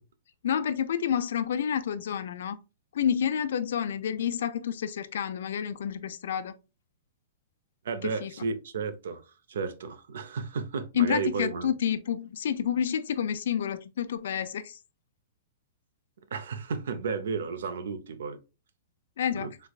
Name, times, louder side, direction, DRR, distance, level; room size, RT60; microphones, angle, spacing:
voice 1, 0.4-2.6 2.9-6.5 8.0-8.3 10.9-14.8 19.2-19.5, left 8 dB, 70° left, 0.3 m, -29 dB
voice 2, 7.8-9.2 9.5-11.7 16.3-18.4 19.4-19.5, right 5 dB, 80° right, 0.6 m, -33 dB
3.3 x 3.1 x 2.3 m
hypercardioid pair, 155°, 0 cm